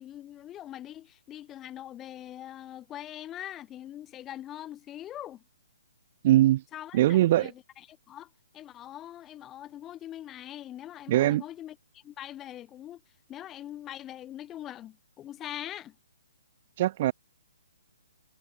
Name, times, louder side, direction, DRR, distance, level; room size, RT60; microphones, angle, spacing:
voice 1, 0.0-5.4 6.7-13.0 13.3-15.9, left 12 dB, 10° left, 0.9 m, -42 dB
voice 2, 6.2-6.6 6.9-7.5 11.1-11.4 16.8-17.1, right 14 dB, 25° right, 0.4 m, -21 dB
hypercardioid pair, 180°, 0 cm